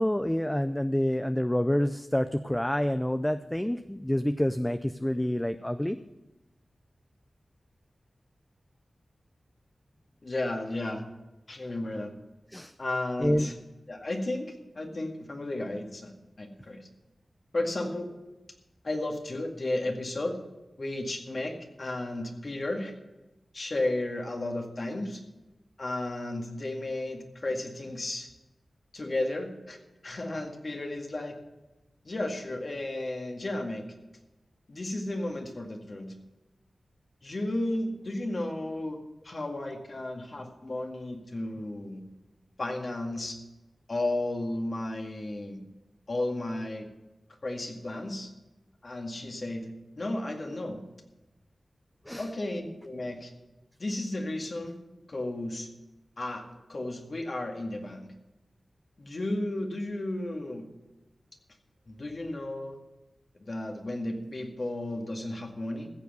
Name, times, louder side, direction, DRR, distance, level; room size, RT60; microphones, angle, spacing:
voice 1, 0.0-6.0 12.5-12.7 13.2-13.5 52.1-52.2, left 1 dB, 10° left, 10 dB, 0.5 m, -27 dB
voice 2, 10.2-11.0 11.5-12.1 12.8-13.5 13.9-16.9 17.5-18.1 18.8-20.4 20.8-22.9 23.5-25.2 25.8-28.3 28.9-29.8 30.0-31.4 32.0-33.9 34.7-36.1 37.2-39.0 39.2-42.0 42.6-43.4 43.9-45.6 46.1-46.9 47.4-48.3 48.8-50.8 52.2-53.3 53.8-54.8 55.1-55.7 56.2-56.4 56.7-58.1 59.0-60.7 61.9-62.8 63.3-65.9, left 1 dB, 50° left, 3 dB, 2.0 m, -33 dB
15.5 x 7.0 x 6.6 m, 1.0 s
cardioid pair, 60°, 0 cm